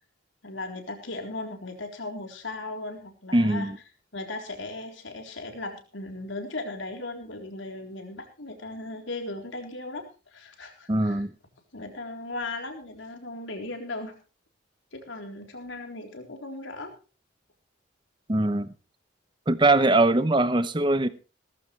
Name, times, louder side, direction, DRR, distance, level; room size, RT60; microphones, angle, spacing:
voice 1, 0.4-3.7 4.1-11.2 11.7-14.1 14.9-16.9, left 2 dB, 75° left, 3.9 m, -37 dB
voice 2, 3.3-3.8 10.9-11.3 18.3-18.7 19.5-21.1, right 2 dB, 25° right, 0.9 m, -22 dB
18.0 x 14.5 x 3.3 m
head